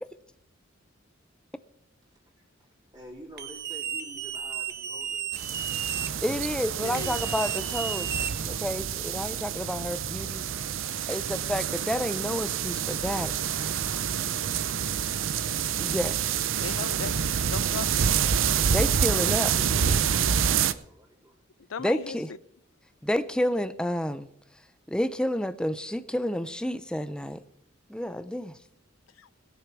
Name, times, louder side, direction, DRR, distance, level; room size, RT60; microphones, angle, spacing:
voice 1, 2.9-6.0 19.1-21.4, equal, 20° right, 3.7 m, -50 dB
sound 1, 3.4-6.1 6.9-8.7, right 8 dB, 55° right, 1.0 m, -33 dB
sound 2, 5.3-20.7, right 8 dB, 75° right, 0.6 m, -27 dB
voice 2, 6.2-8.1 8.4-10.4 11.1-13.3 15.8-16.4 18.7-19.5 19.8-20.0 21.8-22.3 23.0-24.3 24.9-27.4 27.9-28.5, equal, 5° left, 0.5 m, -30 dB
voice 3, 6.8-7.2 16.6-18.3 21.7-22.4 29.2-29.3, left 6 dB, 85° left, 0.5 m, -38 dB
19.5 x 6.8 x 6.1 m
head